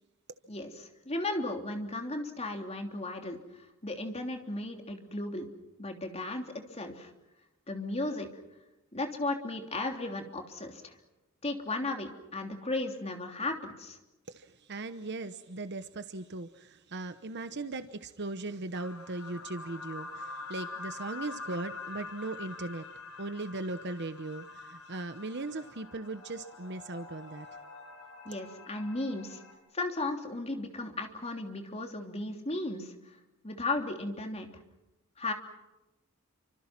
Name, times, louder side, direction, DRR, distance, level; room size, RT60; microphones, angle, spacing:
voice 1, 0.5-3.4 3.8-5.5 5.8-7.1 7.7-8.3 8.9-10.9 11.4-14.0 28.2-29.4 29.7-32.9 33.4-34.5 35.2-35.3, left 2 dB, 30° left, 4 dB, 3.2 m, -35 dB
voice 2, 14.3-27.6, right 2 dB, 55° right, 10 dB, 1.0 m, -39 dB
sound 1, 18.7-29.5, left 3 dB, 90° left, 5.9 m, -45 dB
29.0 x 25.5 x 6.1 m, 0.97 s
head